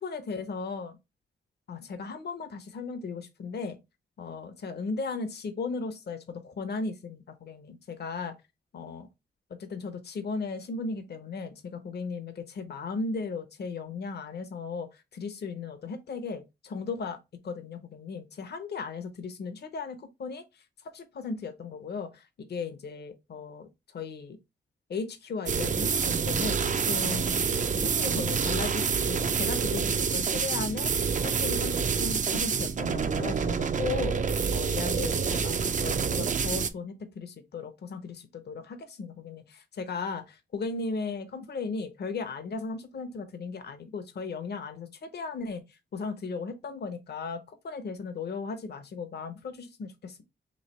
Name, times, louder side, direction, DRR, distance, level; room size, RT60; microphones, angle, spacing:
voice 1, 0.0-1.0 1.7-3.8 4.2-8.3 8.7-9.1 9.6-17.2 17.4-24.4 24.9-26.6 26.8-27.3 27.7-50.2, left 4 dB, 55° left, 0.8 m, -36 dB
sound 1, 25.5-36.7, right 6 dB, 40° right, 0.4 m, -27 dB
3.2 x 2.9 x 4.1 m
wide cardioid pair, 125°, 20 cm